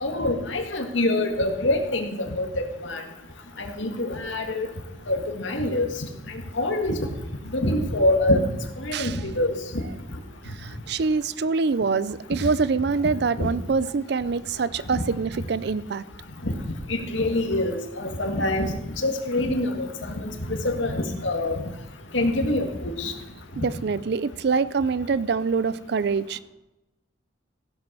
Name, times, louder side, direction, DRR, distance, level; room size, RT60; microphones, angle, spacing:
voice 1, 0.0-3.0 3.6-4.7 5.1-5.9 6.3-7.0 7.5-9.8 13.4-13.5 14.9-15.0 16.4-16.5 16.9-21.6 22.1-23.1, left 1 dB, 80° left, 4 dB, 1.9 m, -25 dB
voice 2, 10.4-16.0 23.6-26.4, right 4 dB, 60° right, 17 dB, 0.4 m, -25 dB
16.0 x 7.6 x 6.1 m, 0.95 s
head